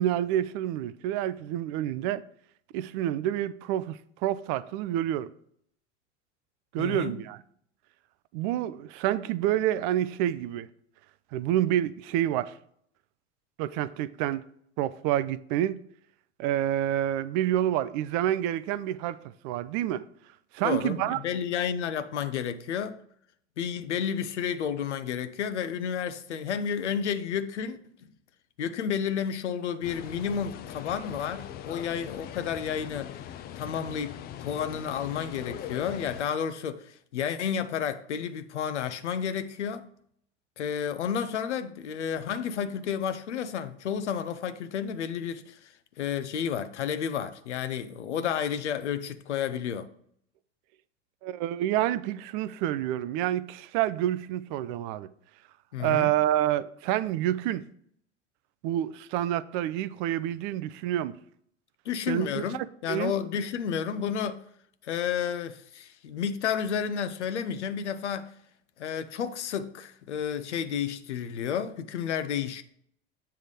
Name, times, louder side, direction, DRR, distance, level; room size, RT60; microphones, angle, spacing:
voice 1, 0.0-2.2 2.7-5.3 6.7-7.4 8.3-10.7 11.3-12.5 13.6-14.4 14.8-15.8 16.4-19.2 19.4-20.0 20.5-21.2 51.2-55.1 55.8-57.6 58.6-61.2 62.1-63.1, right 12 dB, 45° right, 0.5 m, -28 dB
voice 2, 6.8-7.2 20.6-23.0 23.6-27.8 28.6-33.1 33.6-39.9 40.6-45.7 46.0-49.9 55.7-56.1 61.9-64.4 64.8-68.3 68.8-72.6, left 8 dB, 70° left, 0.7 m, -31 dB
sound 1, 29.8-36.2, left 10 dB, 30° left, 0.4 m, -41 dB
7.6 x 3.4 x 6.4 m
figure-of-eight pair, 75°, 36 cm